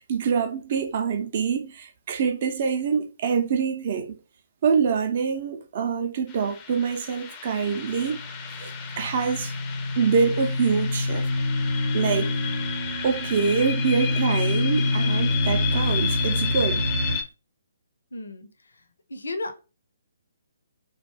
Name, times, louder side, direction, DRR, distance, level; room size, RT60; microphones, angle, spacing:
voice 1, 0.0-4.2 4.6-8.2 8.6-9.5 10.0-11.3 11.9-12.3 13.0-16.8, right 6 dB, 45° right, 0.5 m, -25 dB
sound 1, 6.3-17.2, left 7 dB, 25° left, 0.4 m, -33 dB
sound 2, 7.8-17.2, left 1 dB, 75° right, 0.7 m, -27 dB
voice 2, 18.1-18.5 19.1-19.6, left 2 dB, 70° left, 0.5 m, -33 dB
2.5 x 2.2 x 3.1 m
figure-of-eight pair, 135°, 0 cm